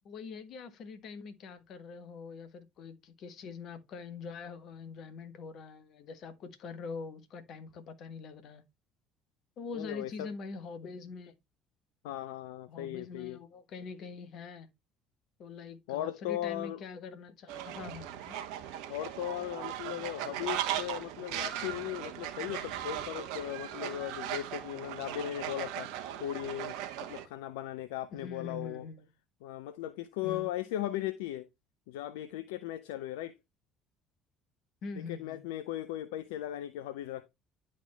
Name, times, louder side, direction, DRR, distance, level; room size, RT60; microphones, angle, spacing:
voice 1, 0.0-8.6 9.6-11.3 12.7-14.7 15.4-18.4 28.1-29.0 30.2-30.5 34.8-35.4, left 5 dB, 55° left, 1.5 m, -44 dB
voice 2, 9.7-10.3 12.0-13.4 15.9-16.8 18.9-28.9 29.4-31.5 31.9-33.4 35.0-37.3, left 13 dB, 70° left, 0.5 m, -37 dB
Fowl, 17.5-27.2, right 11 dB, 65° right, 1.1 m, -38 dB
10.5 x 4.3 x 3.2 m
figure-of-eight pair, 55°, 0 cm